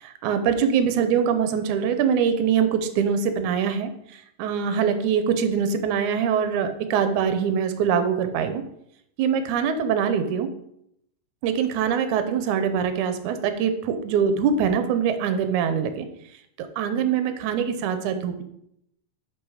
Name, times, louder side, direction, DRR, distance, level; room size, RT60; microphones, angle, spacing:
voice 1, 0.0-3.9 4.4-8.6 9.2-10.5 11.4-16.1 16.6-18.4, right 7 dB, 75° right, 9 dB, 2.0 m, -23 dB
6.6 x 6.1 x 4.8 m, 0.76 s
omnidirectional pair, 3.8 m